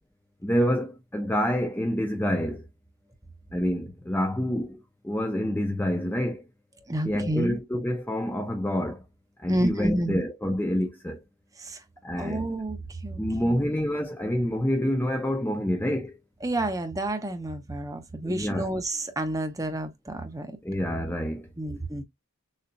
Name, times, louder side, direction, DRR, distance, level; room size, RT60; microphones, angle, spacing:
voice 1, 0.4-2.6 3.5-6.4 7.0-9.0 9.4-11.2 12.0-12.5 13.2-16.2 18.2-18.7 20.6-21.5, equal, 10° left, 0.5 m, -27 dB
voice 2, 6.9-7.6 9.5-10.2 11.6-11.8 12.2-13.7 16.4-20.6 21.6-22.0, right 1 dB, 15° right, 0.8 m, -30 dB
6.6 x 2.8 x 2.2 m
head